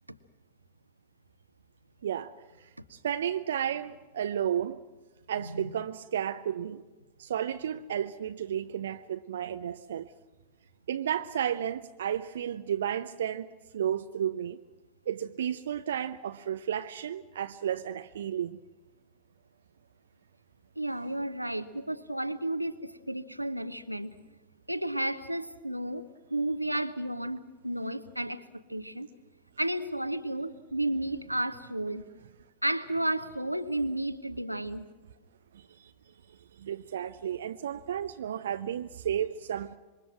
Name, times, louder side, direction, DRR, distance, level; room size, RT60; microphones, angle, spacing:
voice 1, 2.0-2.3 2.6-4.8 5.3-6.8 7.2-10.1 10.9-14.6 15.1-18.6 35.5-35.9 36.3-39.7, right 9 dB, 65° right, 0.7 m, -33 dB
voice 2, 5.4-5.7 20.8-24.1 24.7-28.4 28.7-29.1 29.6-32.0 32.6-34.8, right 1 dB, 90° right, 1.1 m, -32 dB
27.0 x 23.5 x 6.1 m
figure-of-eight pair, 90°, 0 cm